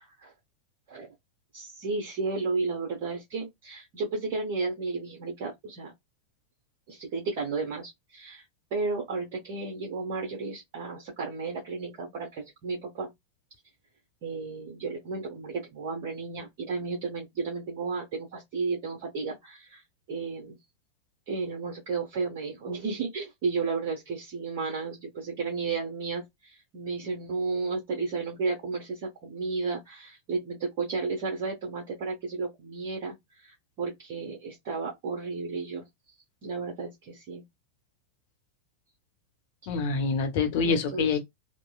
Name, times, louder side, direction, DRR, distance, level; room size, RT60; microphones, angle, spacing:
voice 1, 1.5-5.9 6.9-8.4 8.7-13.1 14.2-19.8 20.1-20.6 21.3-35.8 36.4-37.4 39.6-39.7 40.6-41.2, right 4 dB, 45° right, 0.8 m, -33 dB
voice 2, 39.7-41.2, left 5 dB, 50° left, 0.7 m, -26 dB
3.0 x 2.1 x 2.2 m
figure-of-eight pair, 90°, 0 cm